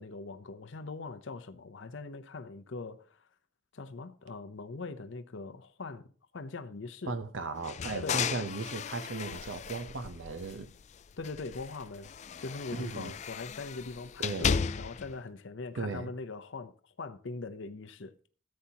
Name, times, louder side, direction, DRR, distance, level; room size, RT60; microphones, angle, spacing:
voice 1, 0.0-3.2 3.7-6.0 6.3-7.2 8.0-8.2 11.2-12.1 12.4-18.1, left 3 dB, 75° left, 0.7 m, -41 dB
voice 2, 7.1-10.7 12.7-13.1 14.2-14.5 15.8-16.1, right 3 dB, 80° right, 0.8 m, -36 dB
sound 1, 7.6-10.8 11.2-15.1, left 6 dB, 35° left, 0.3 m, -35 dB
14.0 x 8.6 x 2.9 m
head